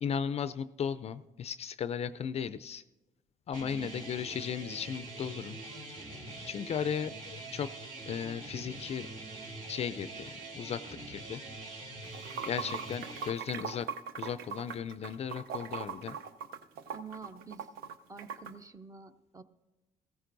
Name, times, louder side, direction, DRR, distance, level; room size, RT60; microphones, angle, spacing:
voice 1, 0.0-2.8 3.5-5.6 6.1-7.7 8.1-9.1 9.7-11.4 12.4-13.9 14.2-16.2, left 7 dB, 45° left, 14 dB, 0.4 m, -36 dB
sound 1, 3.5-13.3, right 2 dB, 55° right, 3.1 m, -44 dB
voice 2, 3.7-4.1 16.9-17.7 18.1-19.4, right 5 dB, 20° right, 11 dB, 0.7 m, -48 dB
Water / Sink (filling or washing), 12.0-18.5, right 6 dB, 80° right, 0.7 m, -40 dB
15.5 x 14.5 x 2.6 m, 1.0 s
cardioid pair, 85°, 16 cm